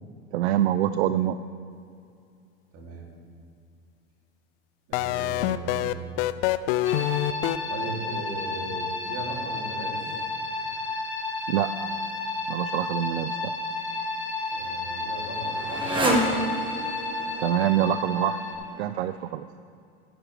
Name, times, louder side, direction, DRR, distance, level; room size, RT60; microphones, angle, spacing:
voice 1, 0.3-1.4 11.5-11.9 12.5-13.5 17.4-18.4 18.8-19.4, right 12 dB, 75° right, 12 dB, 0.5 m, -25 dB
voice 2, 2.7-3.1 4.9-6.1 7.7-10.0 14.5-16.0, right 3 dB, 45° right, -1 dB, 2.7 m, -37 dB
sound 1, 4.9-7.6, left 14 dB, 55° left, 0.5 m, -25 dB
sound 2, 6.8-18.6, left 2 dB, 20° left, 2.5 m, -32 dB
Motorcycle, 13.9-19.3, right 1 dB, 15° right, 1.6 m, -31 dB
12.5 x 11.0 x 3.3 m, 2.4 s
hypercardioid pair, 105°, 33 cm